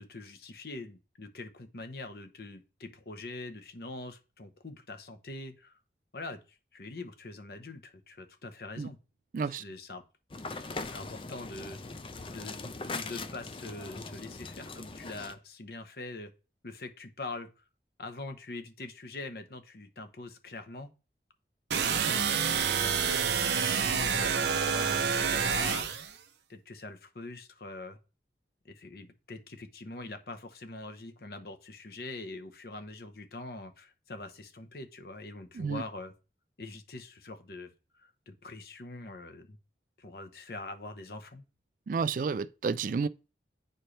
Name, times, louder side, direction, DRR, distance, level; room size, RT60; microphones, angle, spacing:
voice 1, 0.0-5.8 6.1-9.0 9.4-10.0 10.8-11.8 12.3-16.3 16.6-17.6 18.0-20.9 21.9-26.2 26.5-28.0 28.6-36.1 36.6-39.6 40.0-41.4, left 2 dB, 55° left, 0.9 m, -43 dB
voice 2, 9.3-9.6 35.5-35.8 41.9-43.1, right 5 dB, 45° right, 0.3 m, -31 dB
sound 1, 10.3-15.3, left 3 dB, 30° left, 0.5 m, -40 dB
sound 2, 21.7-26.1, right 6 dB, 75° right, 0.7 m, -28 dB
9.8 x 4.4 x 3.2 m
head